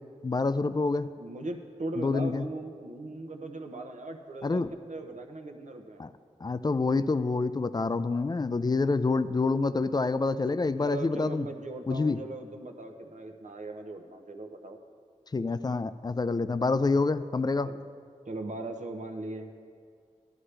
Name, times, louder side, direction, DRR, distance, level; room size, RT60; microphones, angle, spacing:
voice 1, 0.2-1.1 2.0-2.5 4.4-4.7 6.0-6.1 6.4-11.5 11.9-12.2 15.3-17.7, left 3 dB, 30° left, 13 dB, 0.4 m, -27 dB
voice 2, 1.2-6.1 10.8-14.8 17.6-17.8 18.3-19.5, right 2 dB, 65° right, 4 dB, 0.8 m, -39 dB
11.5 x 11.0 x 3.3 m, 2.2 s
wide cardioid pair, 60°, 13 cm